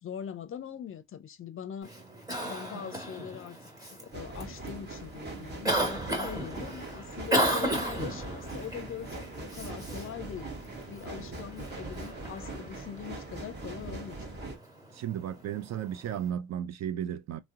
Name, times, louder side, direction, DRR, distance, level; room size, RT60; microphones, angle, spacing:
voice 1, 0.0-1.9 2.4-10.5 10.9-14.4, left 8 dB, 45° left, 0.5 m, -42 dB
Cough, 1.8-16.3, right 1 dB, 10° right, 1.4 m, -36 dB
sound 1, 4.1-14.6, right 2 dB, 35° right, 1.0 m, -41 dB
voice 2, 14.9-17.4, right 10 dB, 60° right, 0.5 m, -34 dB
2.8 x 2.1 x 3.6 m
cardioid pair, 90°, 30 cm